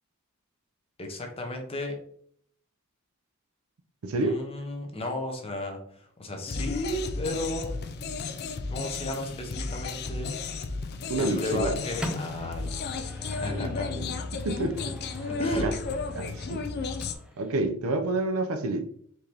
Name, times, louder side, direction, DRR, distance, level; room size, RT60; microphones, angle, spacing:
voice 1, 1.0-1.9 4.2-7.7 8.7-10.4 11.2-13.0 13.3-13.9 15.3-15.7, left 1 dB, 25° left, 0.8 m, -33 dB
voice 2, 4.0-4.4 11.1-11.8 13.5-15.0 15.6-15.7 16.1-16.7 17.4-18.9, right 2 dB, 75° right, 0.5 m, -29 dB
sound 1, 6.5-17.1, left 4 dB, 50° left, 0.4 m, -34 dB
Microwave oven, 11.5-17.6, left 1 dB, 5° right, 0.5 m, -42 dB
4.4 x 2.9 x 3.3 m
head